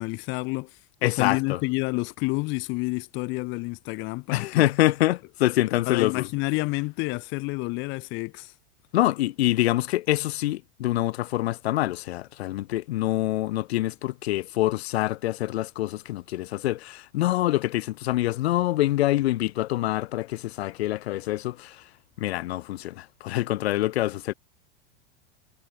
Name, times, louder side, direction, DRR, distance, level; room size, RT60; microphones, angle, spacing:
voice 1, 0.0-4.7 5.9-8.5, left 26 dB, 40° left, 1.1 m, -29 dB
voice 2, 1.0-1.6 4.3-6.3 8.9-21.8 22.2-24.3, left 16 dB, 85° left, 1.8 m, -25 dB
supercardioid pair, 160°, 31 cm